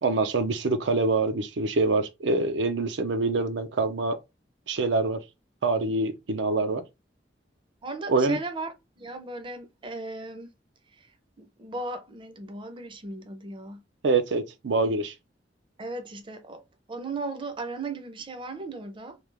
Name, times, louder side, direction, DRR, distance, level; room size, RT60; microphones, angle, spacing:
voice 1, 0.0-4.2 4.7-5.2 5.6-6.8 8.1-8.4 14.0-15.1, right 3 dB, 80° right, 0.5 m, -25 dB
voice 2, 7.8-10.5 10.9-11.1 11.4-13.8 15.8-16.6 16.9-19.2, right 3 dB, 30° right, 0.6 m, -37 dB
3.2 x 2.3 x 3.3 m
head